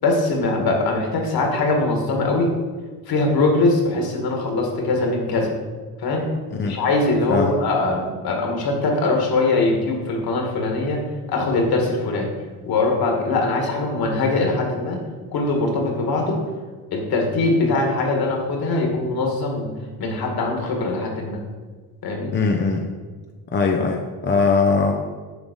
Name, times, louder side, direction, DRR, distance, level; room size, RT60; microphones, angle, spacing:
voice 1, 0.0-2.5 3.1-5.5 6.0-6.3 6.6-11.0 11.3-12.3 12.7-15.0 15.3-16.4 16.9-19.7 20.0-21.4 22.0-22.3, left 2 dB, 50° left, 1 dB, 1.8 m, -22 dB
voice 2, 22.3-22.9 23.5-24.9, left 4 dB, 25° left, 2 dB, 0.5 m, -20 dB
7.1 x 3.8 x 5.2 m, 1.4 s
cardioid pair, 105°, 48 cm